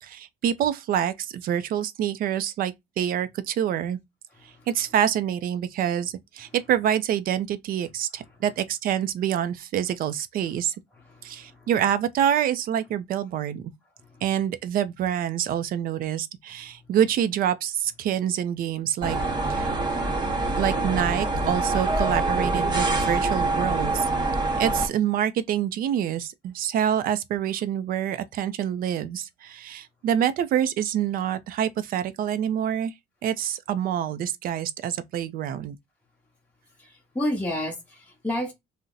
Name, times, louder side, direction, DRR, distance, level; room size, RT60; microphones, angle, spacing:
voice 1, 0.0-4.0 4.7-10.7 11.2-13.6 14.2-19.2 19.5-19.7 20.6-24.1 24.6-32.9 33.2-35.8, right 10 dB, 60° right, 0.4 m, -26 dB
voice 2, 4.3-4.7 6.4-6.6 8.2-8.4 10.4-10.6 10.9-11.7 14.0-14.3 16.5-17.0 36.8-38.5, left 1 dB, 10° left, 0.8 m, -33 dB
sound 1, 19.0-24.9, right 2 dB, 25° right, 0.9 m, -25 dB
2.7 x 2.1 x 3.7 m
cardioid pair, 110°, 17 cm